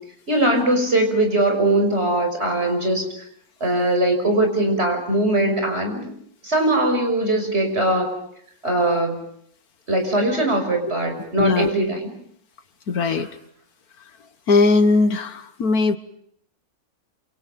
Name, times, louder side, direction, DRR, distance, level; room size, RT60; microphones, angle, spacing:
voice 1, 0.3-3.0 3.6-6.1 6.4-8.2 8.6-9.2 9.9-12.0 13.1-13.2, right 1 dB, 45° right, 4 dB, 6.5 m, -21 dB
voice 2, 11.4-11.7 12.9-13.3 14.5-16.0, left 3 dB, 80° left, 10 dB, 1.9 m, -19 dB
28.5 x 28.0 x 5.3 m, 0.68 s
omnidirectional pair, 1.6 m